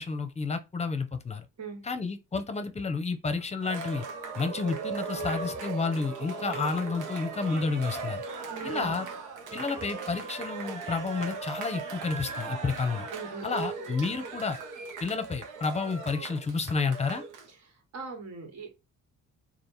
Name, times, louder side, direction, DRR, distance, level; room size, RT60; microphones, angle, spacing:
voice 1, 0.0-1.5 1.8-4.0 4.3-8.2 8.6-9.1 9.5-13.1 13.4-14.6 15.0-17.2, left 4 dB, 20° left, 0.7 m, -30 dB
Cheering, 3.6-17.5, right 4 dB, 85° right, 0.9 m, -38 dB
voice 2, 8.5-9.0 13.1-13.6 17.9-18.7, right 5 dB, 60° right, 1.7 m, -39 dB
3.4 x 2.5 x 4.1 m
cardioid pair, 90°, 30 cm